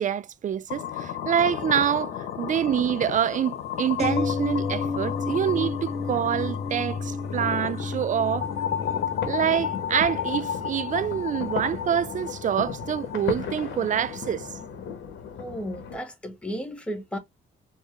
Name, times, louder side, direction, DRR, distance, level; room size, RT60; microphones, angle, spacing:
voice 1, 0.0-8.5 9.3-14.5, right 9 dB, 40° right, 0.4 m, -26 dB
sound 1, 0.7-14.7, left 9 dB, 90° left, 1.0 m, -33 dB
sound 2, 4.0-13.9 14.2-14.3, left 4 dB, 30° left, 1.0 m, -33 dB
sound 3, 8.3-16.0, left 7 dB, 75° left, 1.2 m, -36 dB
voice 2, 15.4-17.2, equal, 5° left, 1.4 m, -34 dB
4.5 x 2.3 x 3.2 m
cardioid pair, 90°, 20 cm